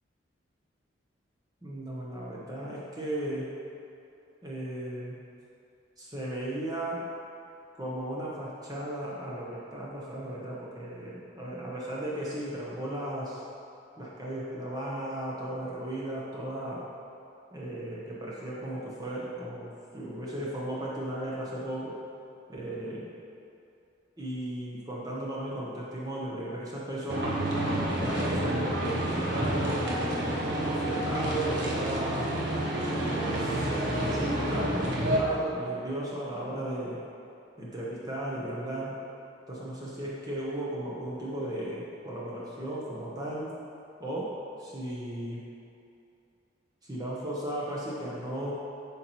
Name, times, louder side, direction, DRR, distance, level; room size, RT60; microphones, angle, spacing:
voice 1, 1.6-3.5 4.4-5.2 6.0-7.0 7.7-13.4 14.0-16.9 17.5-22.0 22.5-23.1 24.2-27.3 28.0-32.3 32.8-37.0 37.6-39.0 39.5-43.5 44.0-45.5 46.8-48.5, right 1 dB, 20° right, -6 dB, 0.9 m, -36 dB
tractor-landfill-working, 27.1-35.2, right 1 dB, 65° right, 1.0 m, -29 dB
8.3 x 5.3 x 3.0 m, 2.7 s
head